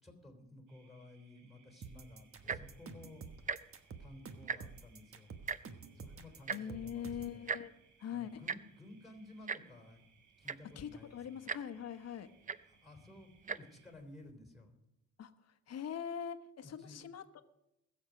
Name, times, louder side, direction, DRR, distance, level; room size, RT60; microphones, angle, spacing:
voice 1, 0.0-3.2 4.0-5.3 5.9-7.5 8.1-10.0 10.4-11.5 12.7-14.7 16.6-17.0, left 1 dB, ahead, 3 dB, 3.4 m, -55 dB
sound 1, 0.7-13.9, right 6 dB, 80° right, 4.7 m, -70 dB
sound 2, 1.8-7.4, right 5 dB, 45° right, 1.2 m, -49 dB
Tick-tock, 2.4-2.7 3.4-3.6 3.9-4.0 4.3-4.8 5.5-5.6 6.5-6.6 7.5-7.6 8.5-8.6 9.5-9.6 10.2-10.3 10.4-10.8 11.5-11.6 12.5-12.6 13.4-13.6 14.3-14.4, right 5 dB, 25° right, 0.5 m, -37 dB
voice 2, 6.5-7.7 8.0-8.4 10.8-12.3 15.2-15.3 15.7-17.4, left 8 dB, 55° left, 9 dB, 1.1 m, -42 dB
21.0 x 7.2 x 5.1 m, 0.87 s
cardioid pair, 90°, 30 cm